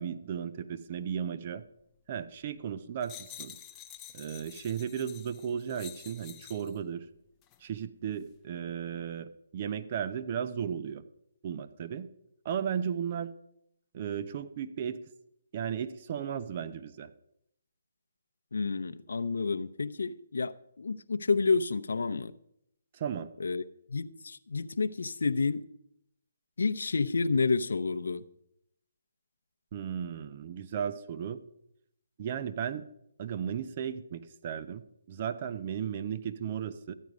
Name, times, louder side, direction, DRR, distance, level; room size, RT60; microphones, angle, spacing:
voice 1, 0.0-1.6 2.1-3.6 4.1-7.0 7.6-11.0 11.4-12.1 12.4-13.3 13.9-15.0 15.5-17.1 22.9-23.3 29.7-31.4 32.2-32.8 33.2-34.8 35.1-36.9, right 8 dB, 40° right, 0.8 m, -35 dB
sound 1, 3.0-6.8 7.4-7.6, left 10 dB, 20° left, 0.6 m, -48 dB
voice 2, 18.5-22.3 23.4-23.6 23.9-25.6 26.6-28.2, left 4 dB, 80° left, 0.7 m, -29 dB
13.0 x 9.3 x 5.0 m
hypercardioid pair, 155°, 0 cm